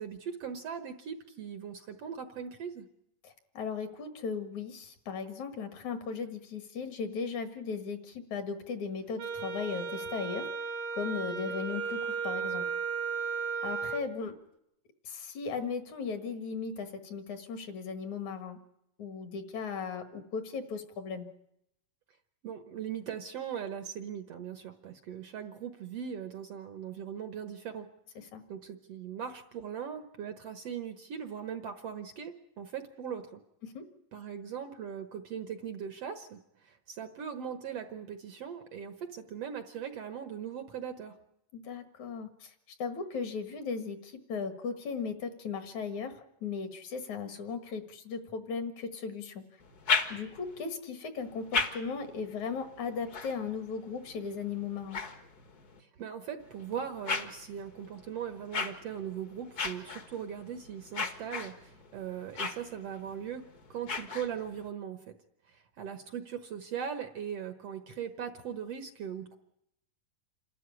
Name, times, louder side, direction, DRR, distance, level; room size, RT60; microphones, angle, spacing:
voice 1, 0.0-2.9 22.4-27.9 28.5-33.4 34.1-41.2 55.8-63.4 63.7-65.1 65.5-69.4, right 8 dB, 60° right, 8 dB, 1.7 m, -39 dB
voice 2, 3.2-10.5 11.0-12.6 13.6-14.3 15.0-18.6 19.0-21.3 28.3-28.4 33.6-33.8 41.5-42.5 42.8-49.4 50.1-55.0, left 5 dB, 60° left, 8 dB, 3.0 m, -37 dB
Wind instrument woodwind instrument, 9.2-14.1, right 5 dB, 80° right, 3.2 m, -35 dB
sound 1, 49.6-50.6 51.2-55.8 56.4-64.7, left 4 dB, 40° left, 1.4 m, -38 dB
28.0 x 13.0 x 9.8 m, 0.80 s
omnidirectional pair, 3.8 m